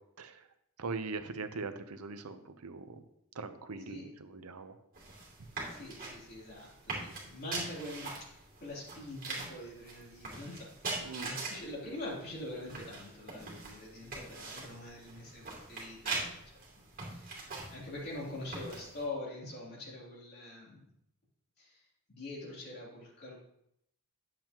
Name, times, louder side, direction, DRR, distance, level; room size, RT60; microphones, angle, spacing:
voice 1, 0.8-3.0 3.4-4.7 11.0-11.3, right 4 dB, 90° right, 9 dB, 0.8 m, -41 dB
sound 1, 4.9-19.0, right 3 dB, 40° right, 2.7 m, -43 dB
voice 2, 5.7-20.8 21.6-23.4, left 1 dB, 50° left, -5 dB, 3.4 m, -44 dB
10.5 x 7.6 x 3.0 m, 0.76 s
head